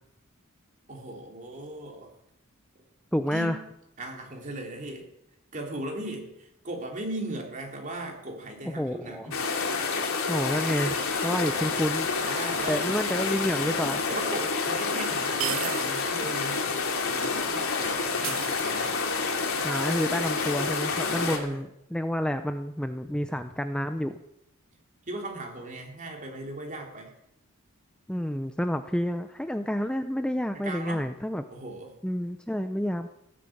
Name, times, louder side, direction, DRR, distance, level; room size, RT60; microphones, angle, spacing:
voice 1, 0.9-2.1 3.3-3.6 4.0-5.1 5.5-9.4 12.2-12.9 14.1-16.7 17.0-19.1 21.1-21.6 25.1-27.1 30.5-31.1 31.5-31.9, right 1 dB, 35° right, 1 dB, 3.6 m, -38 dB
voice 2, 3.1-3.6 8.7-9.3 10.3-12.1 12.7-14.0 19.6-24.2 28.1-31.4 32.0-33.1, equal, 5° left, 8 dB, 0.6 m, -29 dB
sound 1, 9.3-21.4, left 4 dB, 90° left, 2.7 m, -28 dB
sound 2, 14.0-14.1 15.4-16.1 16.5-16.6 18.2-19.1, right 12 dB, 65° right, 0.6 m, -34 dB
16.0 x 11.0 x 7.9 m, 0.81 s
head